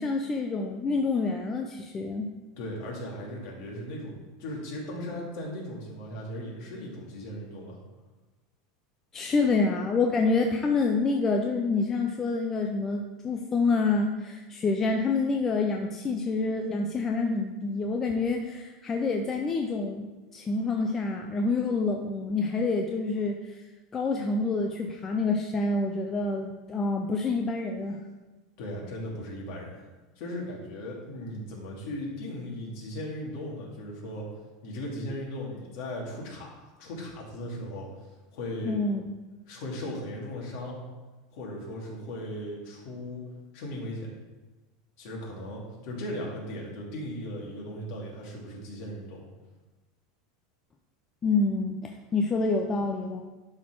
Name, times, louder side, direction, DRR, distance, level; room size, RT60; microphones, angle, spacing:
voice 1, 0.0-2.3 9.1-20.1 20.3-23.4 23.9-28.0 38.7-39.0 51.2-53.2, left 3 dB, 20° left, 2 dB, 0.5 m, -27 dB
voice 2, 2.6-4.1 4.4-7.8 28.6-29.9 30.2-34.3 34.6-37.9 38.3-38.8 39.5-40.8 41.3-43.2 43.5-44.1 45.0-49.2, left 1 dB, 55° left, -3 dB, 2.6 m, -37 dB
11.0 x 4.3 x 4.6 m, 1.2 s
supercardioid pair, 160°, 2 cm